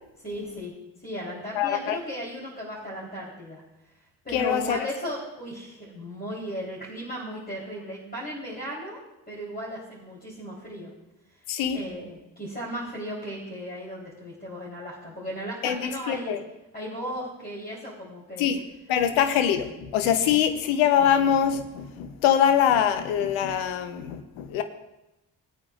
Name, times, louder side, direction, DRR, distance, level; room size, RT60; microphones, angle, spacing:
voice 1, 0.2-3.6 4.2-9.0 9.3-10.9 11.7-16.4 16.7-18.5, equal, 20° left, -5 dB, 3.9 m, -36 dB
voice 2, 1.5-2.0 4.3-4.8 11.5-11.8 15.6-16.4 18.4-18.6 18.9-24.6, left 9 dB, 80° left, 9 dB, 1.0 m, -23 dB
19.5 x 8.8 x 2.5 m, 0.95 s
hypercardioid pair, 45°, 47 cm